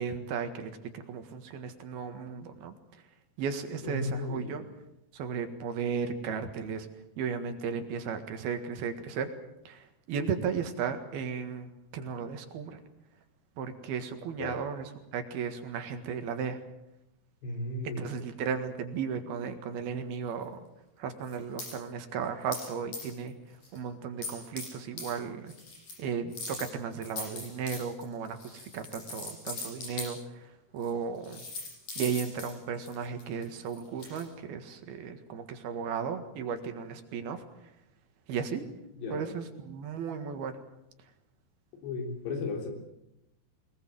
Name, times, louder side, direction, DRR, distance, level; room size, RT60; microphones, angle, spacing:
voice 1, 0.0-3.0 3.4-4.6 5.1-6.9 7.2-9.3 9.7-12.8 13.6-16.6 17.9-20.7 21.0-23.3 23.7-25.5 26.0-31.4 32.0-37.4 38.3-38.7 39.1-40.6, right 6 dB, 70° right, 7 dB, 3.5 m, -35 dB
voice 2, 3.8-4.6 14.4-14.6 17.4-18.1 39.0-39.3 41.8-42.7, left 2 dB, 85° left, 3 dB, 5.8 m, -35 dB
sound 1, 21.2-21.7 22.5-22.7 22.9-23.3 23.6-23.8 24.2-24.7 25.0-25.1 25.5-26.0 26.3-30.1 30.8-30.9 31.2-34.2, left 3 dB, 50° left, 9.0 m, -40 dB
23.0 x 20.5 x 7.7 m, 0.86 s
omnidirectional pair, 4.7 m